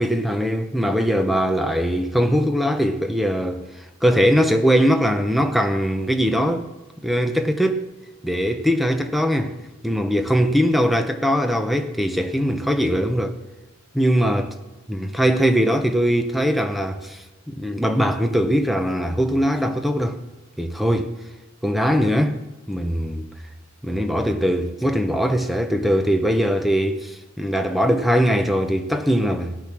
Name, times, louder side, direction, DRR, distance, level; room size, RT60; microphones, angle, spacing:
voice 1, 0.0-3.6 4.0-6.7 7.0-7.8 8.2-9.5 9.8-13.4 13.9-14.5 14.9-20.2 20.6-21.1 21.6-22.4 22.7-23.2 23.8-29.6, equal, ahead, 1.0 m, -21 dB
18.0 x 8.9 x 6.1 m
head